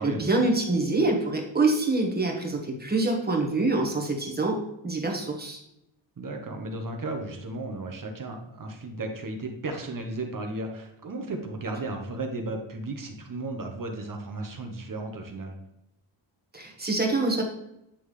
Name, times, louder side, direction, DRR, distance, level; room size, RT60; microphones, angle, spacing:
voice 1, 0.0-5.6 16.5-17.4, right 2 dB, 20° right, 0 dB, 1.3 m, -25 dB
voice 2, 6.2-15.5, right 2 dB, 45° right, 4 dB, 0.9 m, -34 dB
8.5 x 3.5 x 3.2 m, 0.85 s
wide cardioid pair, 110°, 48 cm